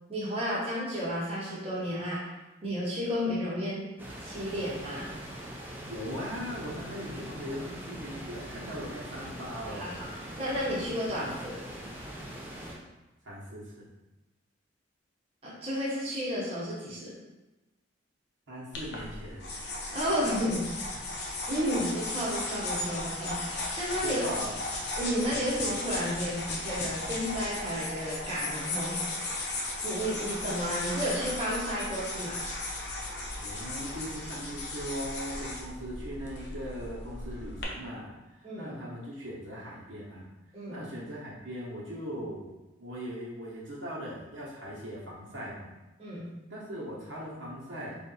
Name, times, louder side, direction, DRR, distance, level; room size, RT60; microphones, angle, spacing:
voice 1, 0.1-2.2 2.6-3.9 4.2-5.1 9.7-10.1 10.4-11.5 15.4-17.2 19.9-20.7 21.5-24.2 25.0-29.0 29.8-32.4 38.4-38.7 40.5-40.8 46.0-46.3, equal, 30° right, -7 dB, 1.0 m, -32 dB
sound 1, 4.0-12.8, equal, 10° right, 0.5 m, -42 dB
voice 2, 5.8-10.0 11.1-11.5 13.2-13.9 18.5-19.4 20.9-21.1 24.0-24.6 33.4-40.2 40.7-42.5 42.8-45.6 46.5-48.0, equal, 85° right, -6 dB, 1.2 m, -39 dB
sound 2, 18.7-37.6, left 2 dB, 60° left, 0.7 m, -36 dB
3.4 x 2.6 x 4.0 m, 1.0 s
head